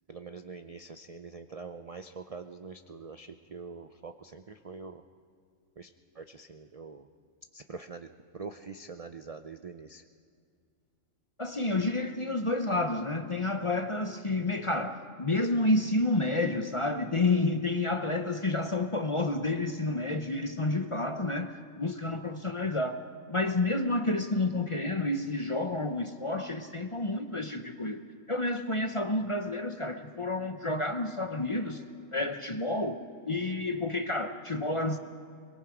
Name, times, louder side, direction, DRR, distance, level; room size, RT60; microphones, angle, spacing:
voice 1, 0.1-5.0 5.8-7.1 7.5-8.1 8.3-10.0, right 4 dB, 50° right, 8 dB, 0.4 m, -44 dB
voice 2, 11.4-23.0 23.3-28.0 28.3-31.8 32.1-33.0 33.2-35.0, left 2 dB, 30° left, 7 dB, 0.7 m, -30 dB
24.0 x 22.0 x 5.0 m, 2.3 s
omnidirectional pair, 1.4 m